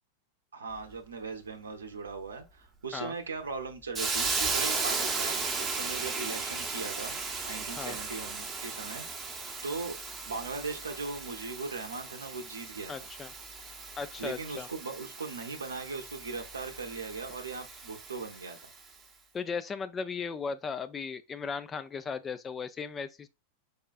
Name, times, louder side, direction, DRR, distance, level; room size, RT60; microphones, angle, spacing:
voice 1, 0.5-7.2 7.5-9.0 9.6-9.9 10.3-12.9 14.2-18.6, right 4 dB, 70° right, 0.6 m, -39 dB
Hiss, 3.9-18.7, right 4 dB, 15° right, 0.7 m, -36 dB
voice 2, 12.9-13.3 14.0-14.7 19.3-23.3, left 5 dB, 20° left, 0.3 m, -36 dB
4.8 x 2.3 x 2.4 m
figure-of-eight pair, 90°, 0 cm